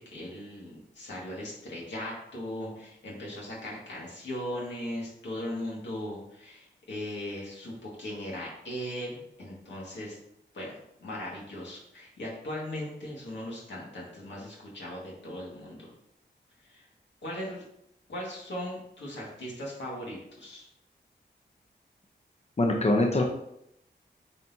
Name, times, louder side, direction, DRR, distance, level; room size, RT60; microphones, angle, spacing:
voice 1, 0.0-10.2 10.5-15.9 16.6-16.9 17.2-17.6 18.1-20.7, left 1 dB, 85° left, -4 dB, 2.0 m, -38 dB
voice 2, 22.6-23.2, left 1 dB, 35° left, 1 dB, 0.9 m, -23 dB
8.2 x 4.2 x 2.8 m, 0.78 s
cardioid pair, 60°, 18 cm